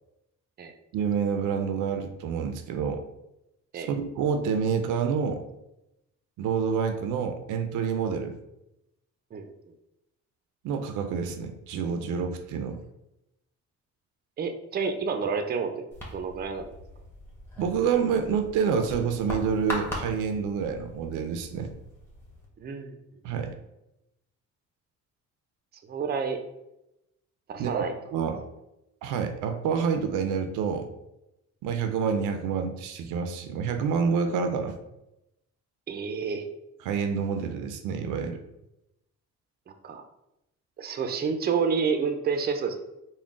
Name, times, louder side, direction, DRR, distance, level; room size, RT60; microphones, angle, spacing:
voice 1, 0.9-3.0 3.7-5.4 6.4-8.4 10.6-12.8 17.6-21.7 23.2-23.5 27.6-28.4 29.0-30.9 31.6-34.8 36.8-38.4, right 6 dB, 90° right, 7 dB, 0.5 m, -28 dB
voice 2, 14.4-15.8 16.1-16.7 22.6-23.0 25.9-26.4 27.5-27.9 35.9-36.5 39.7-40.0 40.8-42.8, right 5 dB, 35° right, 7 dB, 0.4 m, -29 dB
sound 1, 15.9-22.5, left 1 dB, 10° left, 1.2 m, -40 dB
3.7 x 2.1 x 3.6 m, 0.89 s
cardioid pair, 90°, 30 cm